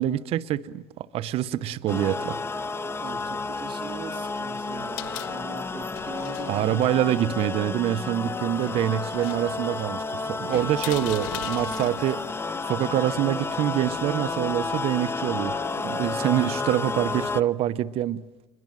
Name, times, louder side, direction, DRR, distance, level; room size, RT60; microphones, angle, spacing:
voice 1, 0.0-2.4 6.5-12.2 12.6-15.6 15.8-18.2, right 12 dB, 70° right, 0.8 m, -25 dB
sound 1, 1.9-17.4, left 3 dB, 25° left, 1.1 m, -31 dB
voice 2, 3.0-6.6, right 5 dB, 50° right, 3.3 m, -41 dB
sound 2, 4.7-13.5, left 16 dB, 90° left, 0.8 m, -42 dB
29.5 x 22.0 x 7.6 m
supercardioid pair, 75°, 11 cm